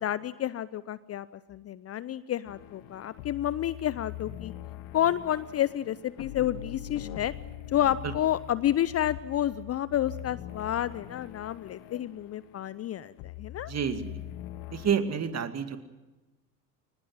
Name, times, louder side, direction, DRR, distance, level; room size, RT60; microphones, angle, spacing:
voice 1, 0.0-4.5 4.9-7.3 7.7-13.7, left 11 dB, 30° left, 18 dB, 0.7 m, -30 dB
sound 1, 2.4-14.9, left 13 dB, 60° left, 1.9 m, -43 dB
voice 2, 13.7-14.2 14.7-15.8, right 7 dB, 35° right, 9 dB, 2.3 m, -29 dB
23.5 x 20.0 x 7.4 m, 1.1 s
figure-of-eight pair, 65°, 47 cm